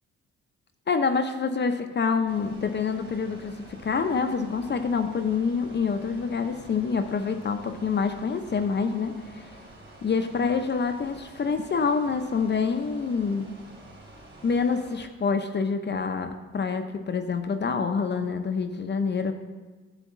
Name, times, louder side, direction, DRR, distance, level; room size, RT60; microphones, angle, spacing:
voice 1, 0.9-9.4 10.0-13.5 14.4-19.3, left 5 dB, 35° left, 6 dB, 0.6 m, -27 dB
sound 1, 2.3-15.1, right 1 dB, 40° right, 2.7 m, -48 dB
9.8 x 3.5 x 7.2 m, 1.4 s
cardioid pair, 90°, 30 cm